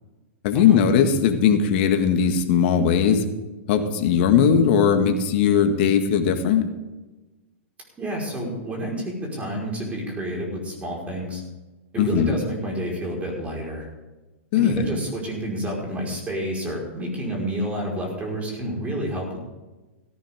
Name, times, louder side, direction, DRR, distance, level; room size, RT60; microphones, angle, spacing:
voice 1, 0.4-3.2 3.7-6.7 12.0-12.4 14.5-14.8, left 7 dB, 55° left, 6 dB, 2.0 m, -19 dB
voice 2, 8.0-11.4 11.9-13.9 14.5-19.4, equal, 20° right, -1 dB, 5.0 m, -29 dB
17.5 x 15.0 x 3.8 m, 1.1 s
hypercardioid pair, 110°, 7 cm